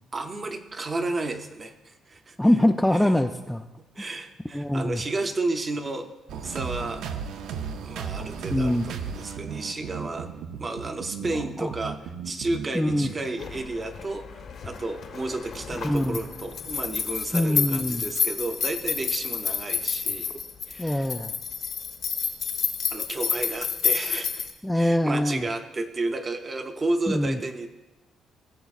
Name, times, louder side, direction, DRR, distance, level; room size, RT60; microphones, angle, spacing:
voice 1, 0.1-2.4 2.9-3.1 3.8-7.1 7.8-10.3 10.6-20.4 20.7-21.1 22.9-27.7, right 2 dB, 25° right, 7 dB, 0.7 m, -32 dB
voice 2, 2.4-3.7 4.5-5.0 8.5-8.9 11.2-11.7 12.7-13.1 15.8-16.2 17.3-18.1 20.8-21.3 24.6-25.5 27.1-27.4, left 1 dB, 5° left, 5 dB, 0.3 m, -24 dB
sound 1, 6.3-13.8, right 6 dB, 85° right, 0.5 m, -36 dB
sound 2, 13.4-24.5, left 6 dB, 60° left, 1.0 m, -30 dB
15.5 x 6.9 x 2.4 m, 1.0 s
cardioid pair, 125°, 0 cm